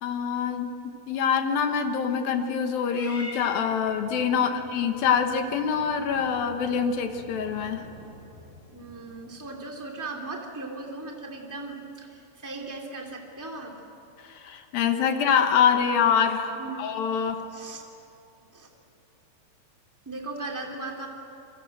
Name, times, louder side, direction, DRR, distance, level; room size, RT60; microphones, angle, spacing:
voice 1, 0.0-7.8 14.3-17.4, left 7 dB, 70° left, 6 dB, 2.4 m, -25 dB
Purr / Meow, 2.9-9.4, left 1 dB, 30° left, 8.9 m, -46 dB
voice 2, 8.7-13.7 16.5-16.8 17.5-17.8 18.5-18.7 20.0-21.1, right 3 dB, 10° right, 1 dB, 1.3 m, -38 dB
28.0 x 23.5 x 7.8 m, 2.8 s
omnidirectional pair, 5.4 m